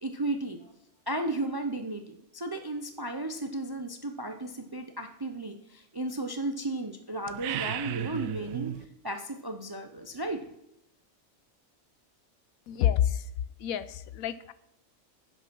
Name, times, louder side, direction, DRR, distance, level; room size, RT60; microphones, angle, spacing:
voice 1, 0.0-0.7 1.1-8.8 9.0-10.4, right 2 dB, 35° right, 6 dB, 0.4 m, -34 dB
sound 1, 7.3-8.9, right 12 dB, 80° right, 1.0 m, -34 dB
voice 2, 12.7-13.2 13.6-14.5, left 10 dB, 80° left, 16 dB, 1.0 m, -28 dB
10.5 x 6.0 x 6.0 m, 0.82 s
omnidirectional pair, 1.5 m